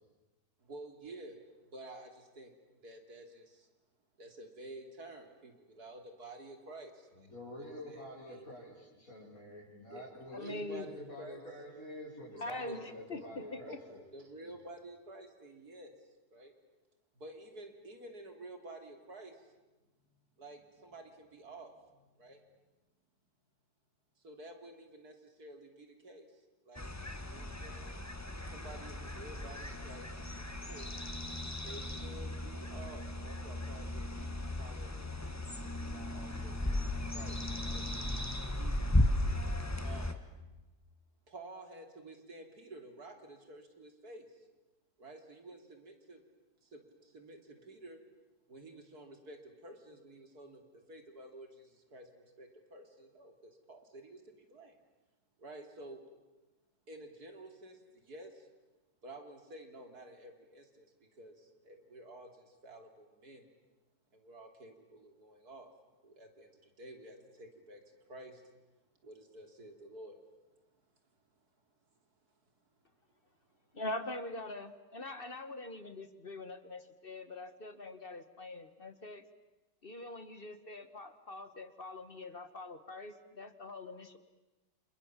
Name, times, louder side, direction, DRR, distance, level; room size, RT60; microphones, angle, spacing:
voice 1, 0.6-2.5 2.8-3.7 4.2-8.4 9.9-11.4 12.4-12.9 13.7-15.9 16.3-16.6 17.2-19.5 20.1-22.4 24.2-26.9 27.3-27.9 28.4-30.9 31.6-37.9 38.6-38.8 39.8-40.2 41.3-44.5 45.0-46.2 46.6-48.0 48.5-54.8 55.4-56.0 56.9-58.5 59.0-63.5 64.1-65.7 66.0-68.4 69.0-70.2, right 2 dB, 70° right, 4 dB, 3.6 m, -51 dB
voice 2, 7.1-14.0 14.4-14.5, left 1 dB, 55° left, -6 dB, 6.3 m, -48 dB
voice 3, 10.3-10.9 12.4-13.8 73.7-79.2 79.8-84.2, left 2 dB, 35° left, 11 dB, 1.4 m, -43 dB
sound 1, 26.7-40.1, left 1 dB, 10° left, 1.4 m, -36 dB
29.0 x 27.5 x 7.4 m, 1.1 s
omnidirectional pair, 1.7 m